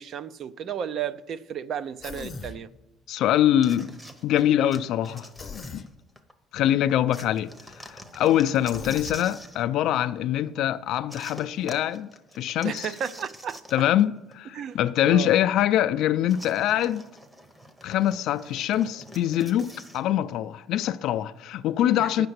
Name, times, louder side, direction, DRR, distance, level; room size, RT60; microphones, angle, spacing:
voice 1, 0.0-2.7 12.6-13.6 14.5-14.8 15.0-15.3 22.0-22.3, right 8 dB, 45° right, 0.5 m, -33 dB
Human voice, 2.0-2.6 5.4-5.9 8.7-9.2, left 5 dB, 30° left, 0.7 m, -38 dB
voice 2, 3.1-3.9 4.2-5.3 5.7-5.8 6.5-7.5 7.8-12.1 12.4-12.9 13.7-17.1 17.8-22.3, left 11 dB, 65° left, 0.4 m, -24 dB
sound 1, 3.6-6.3 7.1-9.6 11.1-14.0 14.3-14.4 16.3-20.0, equal, 10° right, 0.8 m, -45 dB
9.4 x 6.7 x 7.9 m
cardioid pair, 140°, 0 cm